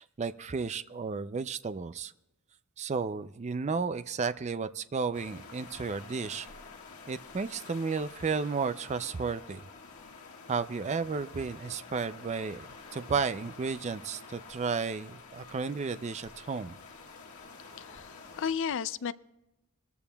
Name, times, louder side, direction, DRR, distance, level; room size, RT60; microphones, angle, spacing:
voice 1, 0.0-2.1 2.8-6.5 7.1-9.6 10.5-16.7, right 5 dB, 30° right, 12 dB, 0.4 m, -33 dB
sound 1, 5.1-18.5, left 4 dB, 90° left, 1.6 m, -49 dB
voice 2, 17.8-19.1, left 7 dB, 60° left, 16 dB, 0.4 m, -33 dB
21.0 x 14.0 x 2.3 m, 0.96 s
head